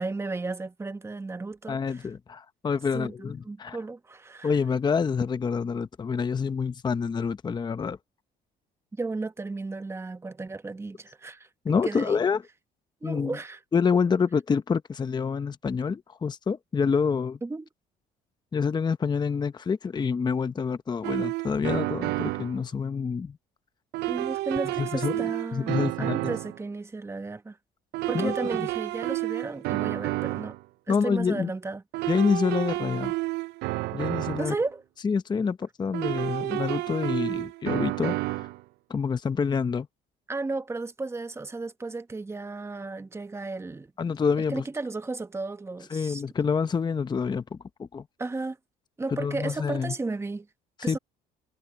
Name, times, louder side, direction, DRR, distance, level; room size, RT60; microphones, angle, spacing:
voice 1, 0.0-2.1 2.9-4.5 9.0-12.2 13.0-13.6 17.4-17.6 24.1-27.6 28.1-30.6 30.9-32.1 34.4-34.8 40.3-43.9 44.5-46.2 48.2-48.6 49.0-50.5 50.8-51.0, right 3 dB, 15° right, 1.2 m, -34 dB
voice 2, 1.7-3.8 4.4-8.0 11.6-12.4 13.0-13.4 13.7-17.4 18.5-23.4 24.8-25.3 25.5-26.2 28.1-28.7 30.9-31.5 32.1-33.1 33.9-34.5 35.0-38.5 38.9-39.9 44.0-44.6 45.9-48.0 49.1-49.9 50.8-51.0, left 5 dB, 25° left, 0.8 m, -27 dB
sound 1, 21.0-22.6 23.9-26.6 27.9-30.6 31.9-34.6 35.9-38.6, right 19 dB, 80° right, 0.5 m, -30 dB
cardioid pair, 110°, 17 cm